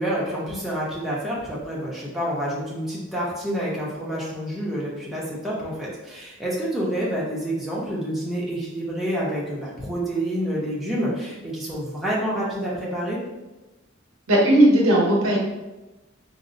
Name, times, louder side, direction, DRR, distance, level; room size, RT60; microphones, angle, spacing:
voice 1, 0.0-13.2, equal, ahead, -7 dB, 0.5 m, -28 dB
voice 2, 14.3-15.4, right 1 dB, 85° right, -2 dB, 0.8 m, -16 dB
3.9 x 2.0 x 2.5 m, 1.1 s
head